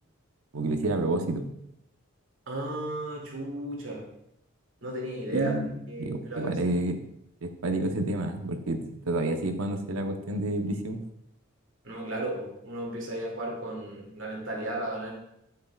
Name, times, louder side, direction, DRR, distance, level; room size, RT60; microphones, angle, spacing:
voice 1, 0.5-1.5 5.3-7.0 7.4-11.0, right 2 dB, 90° right, 5 dB, 0.8 m, -29 dB
voice 2, 2.5-4.0 4.8-5.6 5.9-6.5 11.8-15.1, right 1 dB, 65° right, -1 dB, 2.3 m, -34 dB
8.6 x 8.0 x 2.3 m, 0.77 s
head